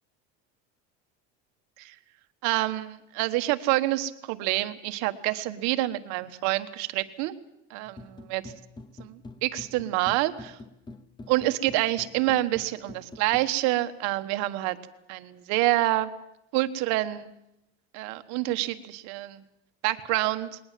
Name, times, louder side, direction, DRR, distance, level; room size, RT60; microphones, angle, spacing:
voice 1, 2.4-7.3 7.7-8.5 9.0-10.6 11.3-14.8 15.1-16.1 16.5-17.3 17.9-19.4 19.8-20.6, right 17 dB, 65° right, 10 dB, 1.3 m, -27 dB
sound 1, 7.9-13.5, left 2 dB, 15° left, 0.9 m, -46 dB
21.0 x 18.5 x 7.5 m, 0.85 s
cardioid pair, 160°, 30 cm